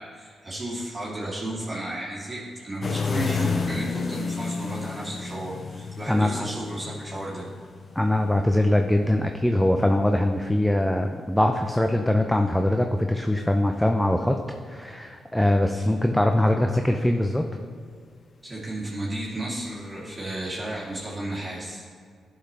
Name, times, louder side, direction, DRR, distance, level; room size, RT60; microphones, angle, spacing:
voice 1, 0.0-7.5 15.7-15.8 18.4-21.8, right 1 dB, 30° right, -7 dB, 2.1 m, -33 dB
sound 1, 2.8-10.6 12.2-12.6 21.0-21.1, left 5 dB, 50° left, 0.5 m, -32 dB
voice 2, 6.1-6.5 8.0-14.4 14.7-17.5, left 1 dB, 5° left, 4 dB, 0.6 m, -22 dB
11.0 x 5.8 x 3.3 m, 2.1 s
hypercardioid pair, 45°, 0 cm